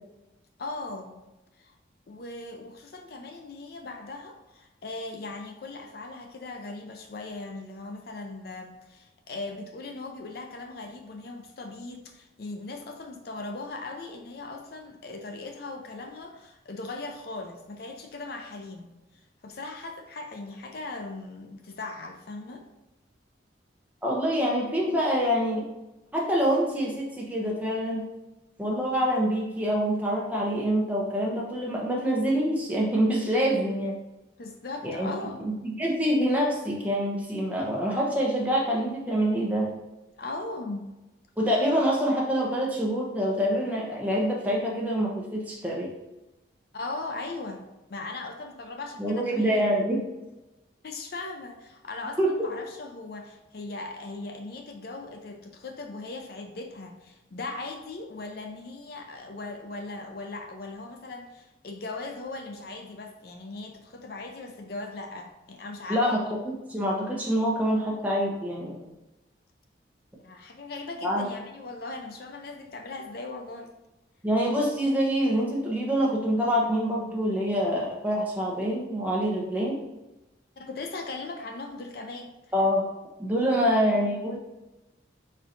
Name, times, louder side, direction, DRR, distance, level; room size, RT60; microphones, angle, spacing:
voice 1, 0.6-1.2 1.6-1.7 2.1-18.9 19.4-22.6 34.4-35.4 40.2-40.9 46.7-49.7 50.8-66.3 70.2-73.7 80.6-82.3 83.5-83.8, left 3 dB, 55° left, 4 dB, 0.5 m, -39 dB
voice 2, 24.0-25.7 26.1-28.1 28.6-34.0 34.8-35.1 35.4-39.7 41.4-45.9 49.0-50.1 52.2-52.5 65.9-68.9 71.0-71.3 74.2-79.8 82.5-82.8 83.2-84.4, equal, 10° right, -3 dB, 0.8 m, -26 dB
4.6 x 4.3 x 2.6 m, 1.0 s
head